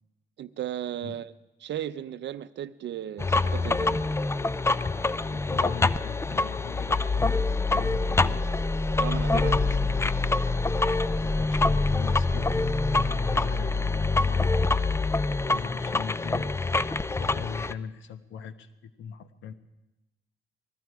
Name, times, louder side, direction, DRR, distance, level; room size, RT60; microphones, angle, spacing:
voice 1, 0.4-1.3 1.6-4.0 9.0-9.9 10.3-10.5, right 11 dB, 65° right, 0.7 m, -36 dB
sound 1, 3.2-17.7, left 3 dB, 15° left, 0.4 m, -25 dB
voice 2, 5.3-8.5 9.2-10.2 11.0-16.5 17.2-19.5, left 7 dB, 75° left, 1.1 m, -40 dB
19.5 x 14.5 x 4.7 m
cardioid pair, 90°, 20 cm